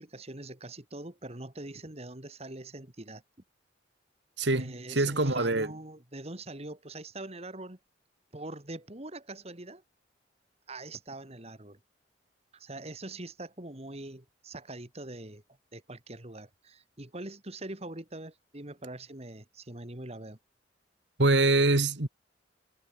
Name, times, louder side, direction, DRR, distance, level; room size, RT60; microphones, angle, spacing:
voice 1, 0.0-3.2 4.6-7.8 8.3-9.8 10.7-11.8 12.5-15.4 15.7-20.4, right 2 dB, 35° right, 2.5 m, -43 dB
voice 2, 4.4-5.7 21.2-22.1, right 2 dB, 70° right, 2.2 m, -24 dB
head